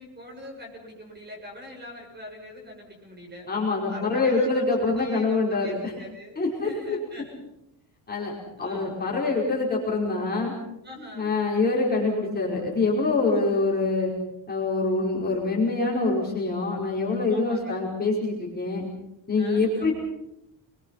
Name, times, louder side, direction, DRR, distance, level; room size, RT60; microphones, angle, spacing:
voice 1, 0.0-3.5 3.9-4.7 4.9-7.3 8.6-9.0 10.8-11.3 13.2-13.8 17.2-17.9 19.4-19.9, left 1 dB, 20° right, 1 dB, 7.6 m, -43 dB
voice 2, 3.5-5.9 6.4-7.0 8.1-8.3 8.6-10.5 11.1-14.1 14.5-18.9 19.3-19.9, left 3 dB, 20° left, -3 dB, 5.1 m, -25 dB
29.0 x 22.5 x 5.8 m, 0.83 s
cardioid pair, 170°, 45 cm